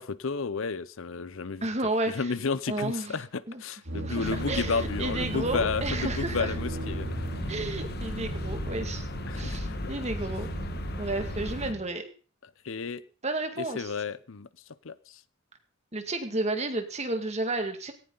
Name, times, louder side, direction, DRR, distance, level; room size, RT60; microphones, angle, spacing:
voice 1, 0.0-1.6 2.1-7.2 9.3-9.8 12.6-13.0 13.6-14.5 14.8-15.2, left 4 dB, 70° left, 0.7 m, -32 dB
voice 2, 1.6-2.3 2.7-3.6 3.9-6.5 7.5-9.0 9.3-10.5 11.0-12.1 13.2-13.9 15.9-17.9, right 2 dB, 35° right, 2.1 m, -32 dB
sound 1, 3.9-11.8, right 2 dB, 65° right, 5.4 m, -37 dB
sound 2, 4.2-11.7, left 2 dB, 50° left, 1.3 m, -36 dB
17.5 x 15.0 x 4.0 m
head